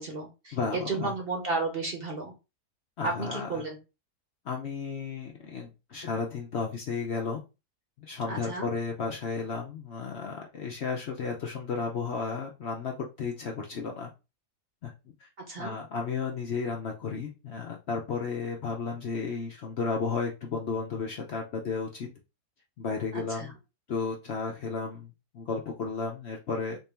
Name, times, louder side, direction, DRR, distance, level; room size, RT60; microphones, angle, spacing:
voice 1, 0.0-2.3 3.0-3.8 8.3-8.7 15.5-15.7 23.1-23.5, right 3 dB, 45° right, 1 dB, 0.9 m, -33 dB
voice 2, 0.5-1.1 3.0-3.6 4.5-7.4 8.0-14.1 14.8-14.9 15.6-22.1 22.8-23.5 23.9-25.1 25.3-26.8, left 5 dB, 55° left, 0 dB, 0.8 m, -33 dB
3.6 x 2.8 x 3.3 m, 0.28 s
omnidirectional pair, 1.6 m